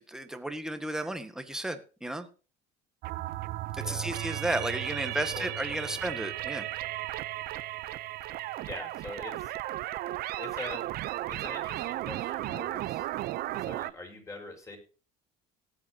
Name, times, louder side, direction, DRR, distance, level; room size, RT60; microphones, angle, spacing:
voice 1, 0.0-2.3 3.7-6.7, right 1 dB, 5° right, 8 dB, 1.6 m, -33 dB
sound 1, 3.0-13.9, right 15 dB, 55° right, 0.7 m, -35 dB
voice 2, 3.8-4.1 4.7-4.8 5.3-6.0 8.4-10.1 10.4-11.0 11.3-13.1 13.3-14.8, left 2 dB, 15° left, 4 dB, 4.8 m, -44 dB
18.0 x 8.6 x 2.9 m, 0.35 s
cardioid pair, 125°, 18 cm